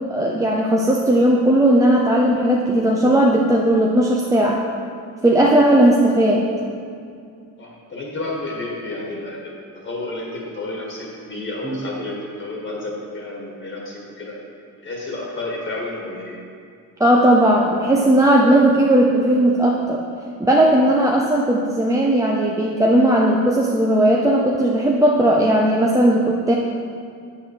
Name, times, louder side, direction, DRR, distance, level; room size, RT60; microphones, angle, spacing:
voice 1, 0.1-4.6 5.2-6.5 17.0-20.0 20.4-26.5, right 1 dB, 10° right, -2 dB, 0.5 m, -16 dB
voice 2, 7.6-14.4 14.8-16.4, left 2 dB, 40° left, -3 dB, 1.6 m, -31 dB
8.2 x 5.6 x 6.5 m, 2.3 s
cardioid pair, 160°, 32 cm